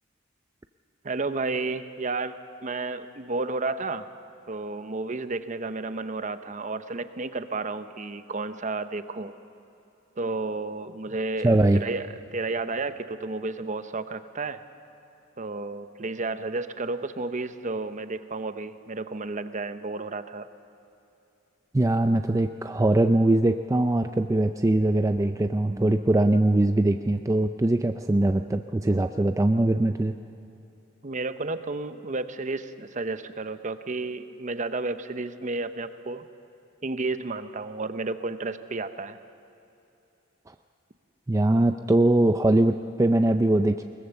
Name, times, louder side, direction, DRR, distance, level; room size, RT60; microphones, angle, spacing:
voice 1, 1.0-4.1 4.5-9.3 10.2-14.6 15.4-20.5 31.0-36.2 36.8-39.2, right 3 dB, 40° right, 11 dB, 0.8 m, -32 dB
voice 2, 11.4-11.8 21.7-30.1 40.5-40.6 41.3-43.8, right 1 dB, 15° right, 7 dB, 0.4 m, -22 dB
21.5 x 19.5 x 7.0 m, 2.8 s
head